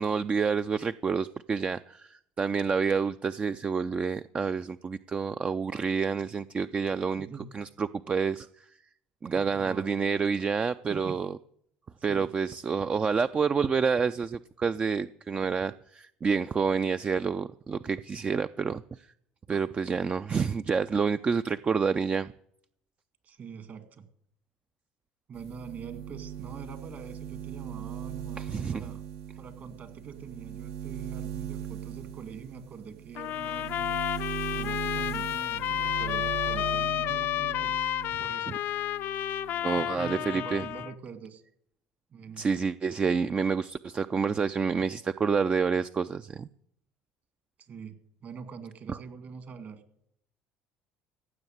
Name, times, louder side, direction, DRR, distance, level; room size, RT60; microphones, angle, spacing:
voice 1, 0.0-7.3 7.5-8.5 9.2-11.4 12.0-19.0 19.5-22.3 28.4-28.8 39.6-40.6 42.4-46.5 48.9-49.0, right 5 dB, 30° right, 12 dB, 0.4 m, -28 dB
voice 2, 7.2-7.5 9.3-10.0 10.9-11.2 12.1-12.3 23.2-24.1 25.3-29.1 29.4-34.0 34.5-37.8 38.2-38.6 39.7-41.4 42.1-42.5 47.6-49.8, right 6 dB, 50° right, 10 dB, 2.2 m, -44 dB
sound 1, 25.3-38.3 38.6-39.6, right 10 dB, 70° right, 1.0 m, -39 dB
sound 2, 33.2-40.9, left 12 dB, 60° left, 0.5 m, -31 dB
15.5 x 7.1 x 9.3 m, 0.72 s
hypercardioid pair, 70°, 4 cm